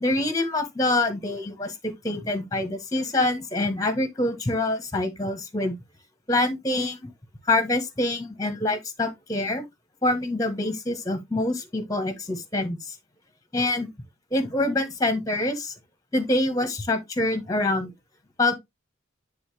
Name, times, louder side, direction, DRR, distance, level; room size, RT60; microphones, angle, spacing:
voice 1, 0.0-1.7 2.0-5.8 6.3-7.1 7.5-9.6 10.0-12.8 13.5-13.9 14.3-15.7 16.1-17.9 18.4-18.5, left 2 dB, 15° left, 1.3 m, -25 dB
9.9 x 3.7 x 3.4 m
head